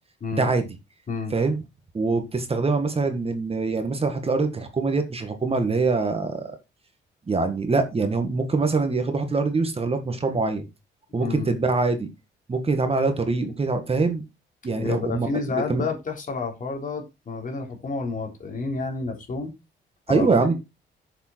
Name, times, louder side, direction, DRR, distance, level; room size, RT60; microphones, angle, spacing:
voice 1, 0.3-0.7 1.3-1.6 1.9-6.4 7.3-10.6 11.1-12.1 12.5-14.2 14.6-15.8 20.1-20.5, right 3 dB, 30° right, 7 dB, 1.8 m, -24 dB
voice 2, 11.2-11.6 14.8-19.5 20.1-20.5, left 4 dB, 40° left, 3 dB, 3.5 m, -30 dB
7.3 x 6.8 x 4.5 m, 0.24 s
cardioid pair, 90°, 20 cm